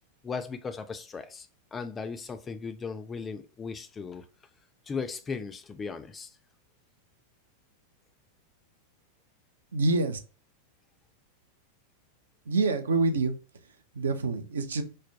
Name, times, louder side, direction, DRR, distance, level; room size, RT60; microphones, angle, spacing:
voice 1, 0.2-4.2 4.9-6.3, left 5 dB, 20° left, 0.3 m, -37 dB
voice 2, 9.7-10.2 12.5-13.4 13.9-14.8, right 3 dB, 70° right, 0.5 m, -26 dB
3.3 x 2.1 x 2.7 m
figure-of-eight pair, 90°, 0 cm